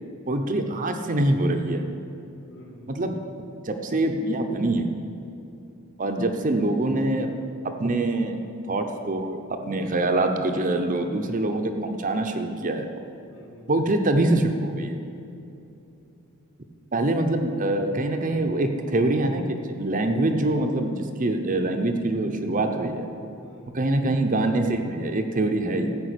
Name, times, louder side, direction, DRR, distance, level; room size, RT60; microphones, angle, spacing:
voice 1, 0.3-2.0 2.9-3.2 3.6-4.9 6.0-7.3 7.8-8.4 8.7-12.9 13.7-15.0 16.9-19.4 19.8-23.1 23.7-26.0, right 2 dB, 35° right, 5 dB, 0.8 m, -24 dB
voice 2, 2.5-3.1 13.3-13.7 18.1-18.4 23.4-24.0, equal, 60° left, -2 dB, 2.2 m, -49 dB
14.0 x 5.5 x 8.3 m, 2.8 s
head